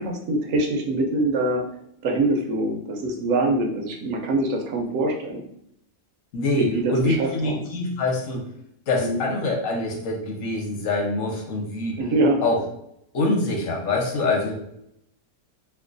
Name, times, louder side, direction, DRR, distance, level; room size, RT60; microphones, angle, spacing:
voice 1, 0.0-1.6 2.0-5.4 6.6-7.6 9.0-9.2 12.0-12.4, right 2 dB, 90° right, 3 dB, 1.0 m, -24 dB
voice 2, 6.3-8.5 8.9-12.0 12.4-12.6 13.1-14.5, left 2 dB, 80° left, 0 dB, 1.2 m, -25 dB
4.5 x 2.2 x 2.5 m, 0.74 s
omnidirectional pair, 1.3 m